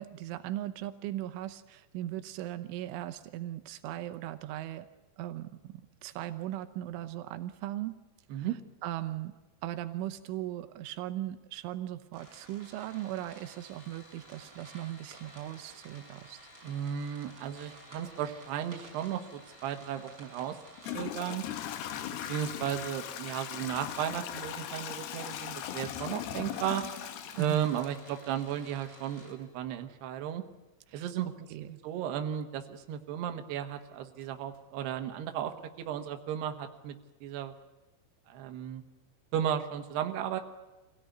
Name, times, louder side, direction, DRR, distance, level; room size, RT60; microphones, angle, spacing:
voice 1, 0.0-4.9 5.2-8.0 8.3-8.5 8.8-9.3 9.6-16.4 27.3-27.7 30.9-31.1 31.5-31.8, right 13 dB, 85° right, 10 dB, 3.4 m, -38 dB
sound 1, 12.1-29.3, right 1 dB, 15° right, 7.3 m, -53 dB
voice 2, 16.6-19.2 19.6-20.6 20.9-21.4 22.2-26.8 27.4-30.4 30.9-31.3 31.8-37.0 37.2-37.5 38.3-38.8 39.3-40.4, right 9 dB, 70° right, 5 dB, 3.3 m, -34 dB
Toilet flush / Trickle dribble, 20.0-20.1 20.8-28.6, left 11 dB, 70° left, 2.8 m, -39 dB
25.0 x 17.0 x 9.4 m, 1.1 s
omnidirectional pair, 5.4 m